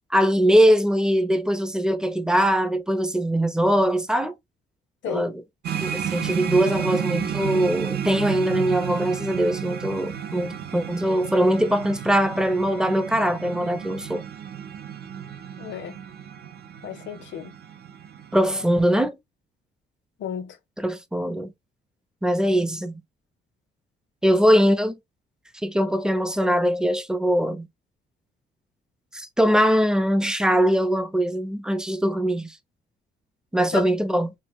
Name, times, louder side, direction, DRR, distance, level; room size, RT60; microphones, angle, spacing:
voice 1, 0.1-4.4 5.1-5.4 5.8-14.2 18.3-19.2 20.8-21.5 22.2-23.0 24.2-25.0 25.6-27.7 29.1-32.6 33.5-34.3, equal, 5° right, 0.5 m, -22 dB
voice 2, 5.0-5.4 15.6-16.0 16.8-17.6 20.2-20.6 24.3-24.4 33.7-33.8, left 8 dB, 70° left, 0.7 m, -33 dB
sound 1, 5.6-19.0, right 9 dB, 55° right, 0.4 m, -32 dB
2.7 x 2.0 x 3.4 m
cardioid pair, 90°, 20 cm